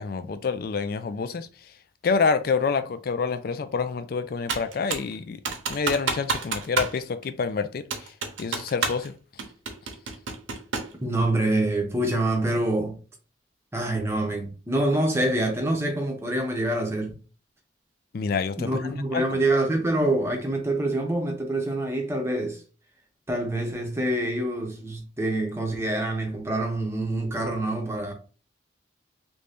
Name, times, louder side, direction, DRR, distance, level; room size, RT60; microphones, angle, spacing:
voice 1, 0.0-1.5 2.0-5.4 5.7-8.1 8.4-9.1 18.1-19.2, left 5 dB, 50° left, 0.3 m, -27 dB
Computer keyboard, 4.5-5.1 5.5-7.0 7.2-7.3 7.9-9.1 9.4-11.0, right 4 dB, 90° right, 0.8 m, -29 dB
voice 2, 11.0-13.0 13.7-17.2 18.6-22.6 23.3-28.1, right 1 dB, 15° right, 0.7 m, -26 dB
3.2 x 2.6 x 3.4 m
head